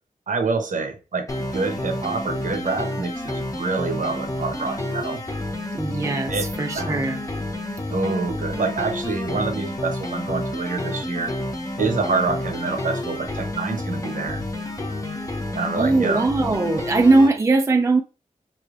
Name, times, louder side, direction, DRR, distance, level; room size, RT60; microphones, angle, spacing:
voice 1, 0.3-5.2 6.3-6.5 6.7-7.0 7.9-11.3 11.8-14.4 15.5-16.3, right 4 dB, 65° right, 0.8 m, -26 dB
sound 1, 1.3-17.3, left 1 dB, 25° left, 0.7 m, -30 dB
voice 2, 5.7-7.2 15.7-18.0, right 3 dB, 20° right, 0.4 m, -20 dB
5.4 x 3.2 x 2.4 m
wide cardioid pair, 130°, 15 cm